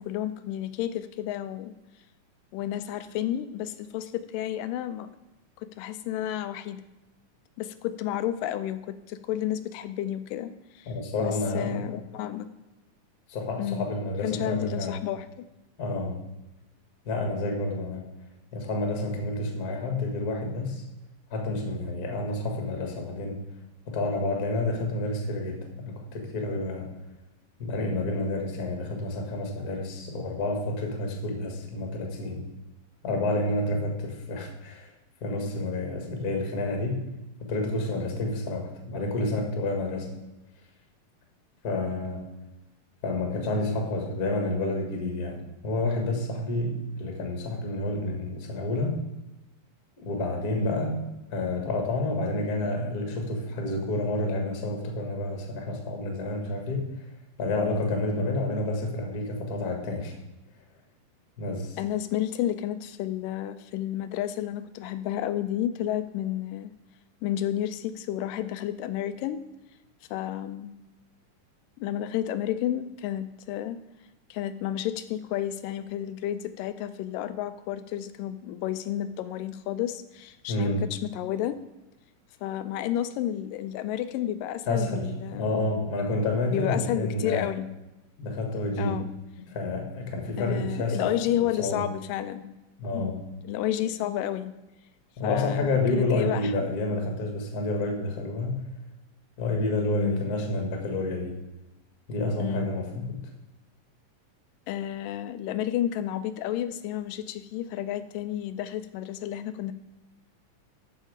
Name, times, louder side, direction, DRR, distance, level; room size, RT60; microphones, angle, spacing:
voice 1, 0.0-1.7 2.5-5.1 5.6-6.8 7.6-10.9 11.2-12.5 13.6-13.9 14.2-15.5 50.6-50.8 61.8-66.7 67.2-69.4 70.1-70.7 71.8-73.8 74.3-81.6 82.4-85.7 86.5-87.7 88.8-89.1 90.4-92.6 92.9-93.1 93.5-94.5 95.2-96.5 100.0-100.3 102.4-102.7 104.7-109.7, left 12 dB, 85° left, 11 dB, 2.2 m, -31 dB
voice 2, 10.9-11.9 13.3-15.0 15.8-16.2 17.0-18.1 18.5-20.8 21.3-23.4 23.9-26.9 27.6-32.5 33.0-34.9 35.2-37.1 37.4-40.1 41.6-42.3 43.0-49.0 50.0-51.0 51.3-57.1 57.4-60.1 61.4-61.8 80.5-81.0 84.7-87.5 88.2-89.1 89.5-91.9 92.8-93.2 95.2-98.7 99.4-101.4 102.1-103.2, left 2 dB, 40° left, 2 dB, 1.5 m, -29 dB
13.0 x 5.5 x 4.9 m, 1.0 s
omnidirectional pair, 3.9 m